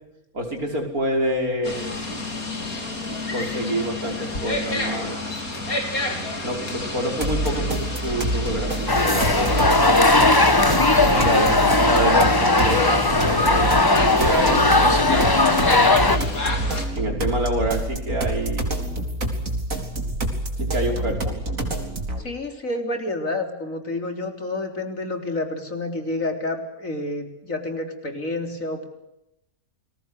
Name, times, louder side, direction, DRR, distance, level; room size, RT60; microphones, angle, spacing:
voice 1, 0.3-2.0 3.3-5.2 6.4-10.1 11.1-11.5 11.8-15.2 17.0-18.9 20.6-21.4, right 1 dB, 90° right, 3 dB, 6.0 m, -27 dB
sound 1, 1.6-16.9, left 2 dB, 80° left, 4.4 m, -30 dB
sound 2, 7.2-22.2, right 1 dB, 70° right, 4.2 m, -27 dB
sound 3, 8.9-16.2, left 2 dB, 15° left, 1.1 m, -18 dB
voice 2, 11.0-11.6 22.2-28.9, left 2 dB, 65° left, 5 dB, 4.2 m, -29 dB
29.5 x 21.5 x 6.6 m, 0.87 s
omnidirectional pair, 1.5 m